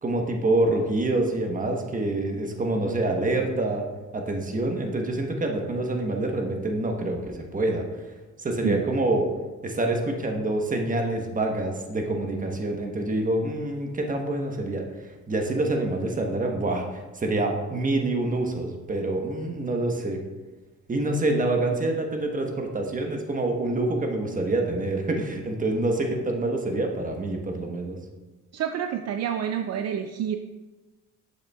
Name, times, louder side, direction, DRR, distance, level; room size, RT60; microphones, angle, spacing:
voice 1, 0.0-3.8 4.1-7.8 8.4-9.3 9.6-20.2 20.9-28.0, right 2 dB, 25° right, 2 dB, 1.1 m, -26 dB
voice 2, 28.5-30.4, right 9 dB, 60° right, 7 dB, 0.4 m, -28 dB
8.2 x 6.8 x 2.3 m, 1.2 s
cardioid pair, 90°, 30 cm